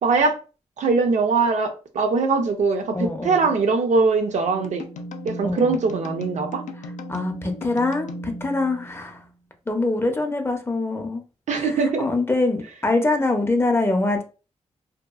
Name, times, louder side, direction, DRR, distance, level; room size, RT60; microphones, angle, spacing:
voice 1, 0.0-0.4 0.8-4.8 5.2-6.6 11.5-12.1, right 4 dB, 75° right, 0.5 m, -21 dB
voice 2, 2.9-3.5 5.4-5.9 6.8-9.2 9.7-11.2 11.5-14.2, left 2 dB, 20° left, 0.4 m, -24 dB
sound 1, 4.4-9.3, equal, 90° left, 0.4 m, -36 dB
2.7 x 2.2 x 2.3 m
wide cardioid pair, 135°, 12 cm